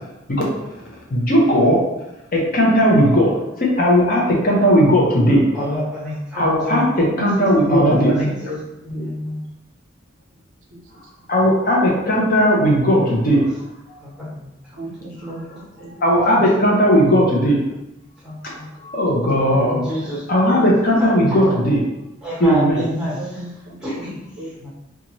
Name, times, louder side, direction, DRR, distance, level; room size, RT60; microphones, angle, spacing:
voice 1, 1.1-1.8 2.3-3.3 3.8-5.4 6.4-6.8 7.2-8.3 11.3-13.4 16.0-17.6 18.9-19.8 20.3-21.8 22.4-22.8, equal, 45° left, -3 dB, 0.6 m, -16 dB
voice 2, 5.5-7.1 7.5-7.6 8.0-8.4 8.8-9.4 14.0-14.5 15.3-15.4 15.8-15.9 16.3-16.4 18.2-18.7 19.7-20.4 21.0-21.6 22.2-23.4 23.8-24.7, equal, 5° right, -9 dB, 1.0 m, -29 dB
voice 3, 6.9-8.6 8.9-9.1 10.7-10.8 14.8-15.9 16.2-16.4 19.0-20.2 20.5-20.6 23.0-24.1 24.4-24.7, right 1 dB, 70° right, 0 dB, 0.5 m, -35 dB
2.6 x 2.3 x 2.9 m, 0.91 s
head